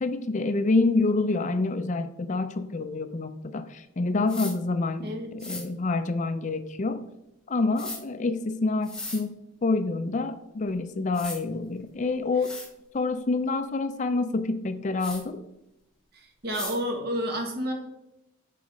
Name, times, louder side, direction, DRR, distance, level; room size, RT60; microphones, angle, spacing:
voice 1, 0.0-7.1 7.5-9.4 9.6-12.5 12.9-15.4, left 3 dB, 40° left, 10 dB, 0.4 m, -27 dB
sound 1, 4.3-4.5 5.4-5.6 7.8-8.0 8.8-9.2 10.7-10.8 11.1-11.4 12.0-12.1 12.4-12.7 15.0-15.2 16.5-16.8, left 2 dB, 5° left, 1.1 m, -37 dB
voice 2, 16.1-17.7, equal, 50° right, 2 dB, 1.6 m, -30 dB
8.5 x 4.0 x 5.0 m, 0.88 s
head